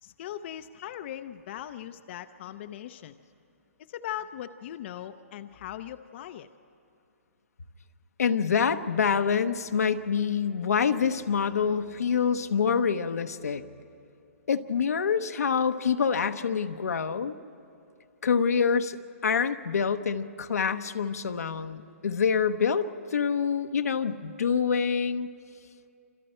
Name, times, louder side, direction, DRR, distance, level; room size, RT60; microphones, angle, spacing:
voice 1, 0.0-3.2 3.9-6.5, left 11 dB, 50° left, 9 dB, 0.6 m, -39 dB
voice 2, 8.2-13.6 14.5-17.4 18.2-19.0 19.2-25.3, left 6 dB, 85° left, 8 dB, 1.0 m, -26 dB
28.0 x 26.0 x 4.4 m, 2.6 s
hypercardioid pair, 140°, 8 cm